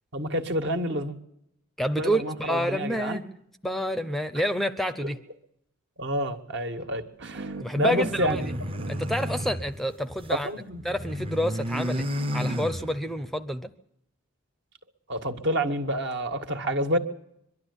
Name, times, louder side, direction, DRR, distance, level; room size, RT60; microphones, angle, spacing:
voice 1, 0.1-1.2 2.0-3.2 5.0-5.1 6.0-8.4 8.6-8.7 10.3-10.8 11.7-11.8 15.1-17.0, right 1 dB, 60° right, 6 dB, 1.9 m, -28 dB
voice 2, 1.8-3.2 3.6-5.2 7.6-8.5 8.9-10.5 10.8-12.0 12.3-13.7, equal, ahead, 10 dB, 0.7 m, -28 dB
sound 1, 7.2-10.3, right 2 dB, 80° right, 1.6 m, -41 dB
sound 2, 8.0-10.4 10.7-13.3, equal, 25° right, 0.9 m, -32 dB
23.5 x 12.0 x 9.8 m, 0.76 s
head